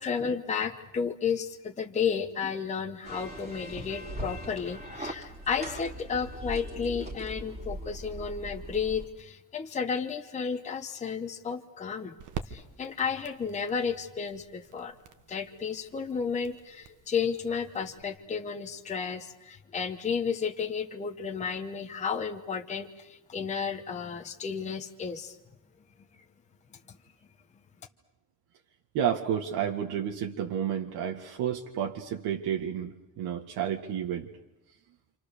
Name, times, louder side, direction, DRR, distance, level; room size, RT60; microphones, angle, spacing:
voice 1, 0.0-12.1 12.5-14.9 15.3-25.3 26.9-27.0, left 6 dB, 20° left, 4 dB, 1.0 m, -32 dB
sound 1, 3.0-9.1, right 1 dB, 15° right, 2.5 m, -40 dB
sound 2, 10.1-18.0, right 7 dB, 55° right, 1.5 m, -47 dB
voice 2, 28.9-34.3, right 9 dB, 80° right, 2 dB, 2.0 m, -31 dB
28.0 x 27.5 x 6.8 m, 0.93 s
cardioid pair, 170°, 37 cm